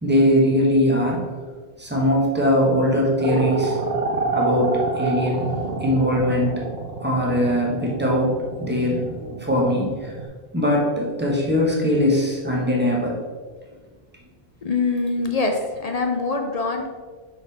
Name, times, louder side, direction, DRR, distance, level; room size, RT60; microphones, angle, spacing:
voice 1, 0.0-1.3 1.8-3.8 4.3-5.5 5.8-6.6 7.0-10.2 10.5-13.2, equal, 10° right, -3 dB, 1.2 m, -21 dB
sound 1, 3.2-10.2, right 3 dB, 75° right, 1.1 m, -27 dB
voice 2, 14.6-16.9, left 3 dB, 45° left, 4 dB, 0.6 m, -24 dB
5.8 x 4.4 x 4.1 m, 1.5 s
omnidirectional pair, 1.1 m